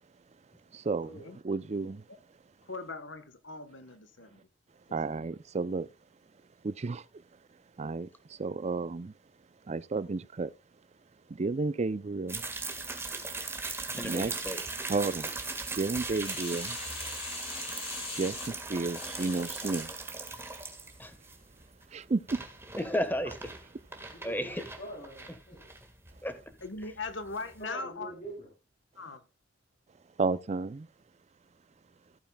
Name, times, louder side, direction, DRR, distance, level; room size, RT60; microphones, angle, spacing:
voice 1, 0.7-1.1 1.4-2.0 4.9-5.9 6.6-7.0 7.8-9.1 9.7-10.5 11.3-12.4 13.9-14.3 14.9-15.3 15.8-16.8 18.1-19.9 21.9-22.4 30.2-30.9, right 3 dB, 35° right, 0.5 m, -32 dB
voice 2, 2.7-4.4 5.0-5.2 26.6-28.1 29.0-29.2, left 3 dB, 85° left, 1.2 m, -40 dB
sound 1, 12.3-27.6, right 3 dB, 15° right, 1.7 m, -39 dB
voice 3, 13.9-14.6 21.0-21.1 22.8-23.5 24.2-24.6 26.2-26.4, equal, 10° left, 1.3 m, -33 dB
sound 2, 16.1-19.9 20.4-20.5, left 3 dB, 35° left, 3.1 m, -41 dB
voice 4, 24.1-25.7 27.6-28.5, right 1 dB, 50° left, 3.0 m, -44 dB
15.0 x 8.7 x 2.3 m
head